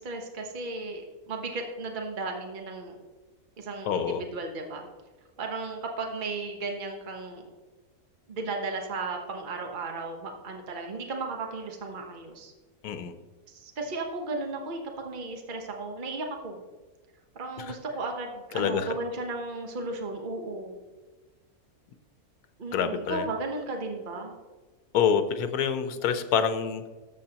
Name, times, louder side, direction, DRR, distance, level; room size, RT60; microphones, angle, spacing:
voice 1, 0.0-3.0 3.6-4.9 5.4-7.4 8.3-12.5 13.5-16.6 17.3-20.8 22.6-24.3, right 3 dB, 35° right, 3 dB, 1.1 m, -35 dB
voice 2, 3.9-4.2 12.8-13.1 18.5-18.9 22.7-23.2 24.9-26.8, left 7 dB, 90° left, 9 dB, 1.2 m, -26 dB
13.0 x 7.2 x 2.9 m, 1.3 s
omnidirectional pair, 1.6 m